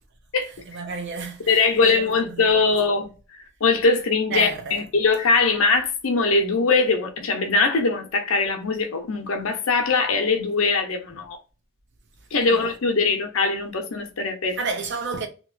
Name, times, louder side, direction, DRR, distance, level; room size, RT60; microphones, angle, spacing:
voice 1, 0.7-2.6 4.3-4.8 12.4-12.7 14.6-15.3, right 4 dB, 60° right, 0.7 m, -31 dB
voice 2, 1.5-3.1 3.6-11.4 12.3-14.6, left 4 dB, 90° left, 0.7 m, -21 dB
3.0 x 2.8 x 2.4 m
head